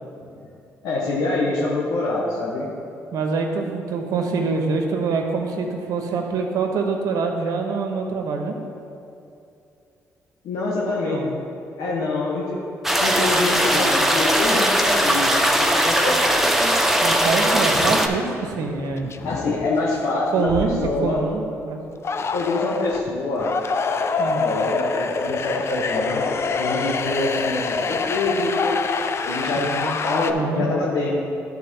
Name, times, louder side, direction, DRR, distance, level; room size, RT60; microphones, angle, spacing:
voice 1, 0.8-2.7 10.4-11.2 11.8-12.6 13.0-16.7 19.2-21.2 22.3-23.5 24.3-28.8 29.2-29.7 30.0-31.1, left 2 dB, 80° left, -4 dB, 1.2 m, -25 dB
voice 2, 3.1-8.6 10.8-11.3 17.0-19.1 20.3-21.8 24.2-24.4 29.6-30.0 30.3-30.7, right 4 dB, 75° right, 3 dB, 1.0 m, -25 dB
sound 1, 12.8-18.1, equal, 5° right, 0.8 m, -19 dB
sound 2, 17.7-18.2 18.5-20.1 20.5-21.4 22.0-30.3, left 4 dB, 45° left, 0.5 m, -26 dB
12.0 x 4.1 x 4.4 m, 2.6 s
supercardioid pair, 65°, 6 cm